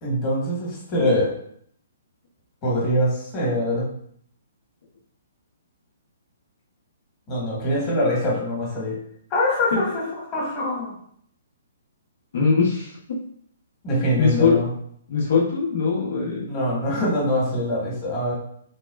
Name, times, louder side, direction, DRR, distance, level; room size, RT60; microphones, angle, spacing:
voice 1, 0.0-1.3 2.6-3.9 7.3-9.0 9.3-10.0 10.3-10.9 13.8-14.7 16.5-18.3, left 1 dB, 30° left, -4 dB, 1.3 m, -23 dB
voice 2, 12.3-13.2 14.2-14.6 15.1-16.4, left 5 dB, 70° left, -5 dB, 1.0 m, -21 dB
3.5 x 2.2 x 2.3 m, 0.66 s
hypercardioid pair, 140°, 0 cm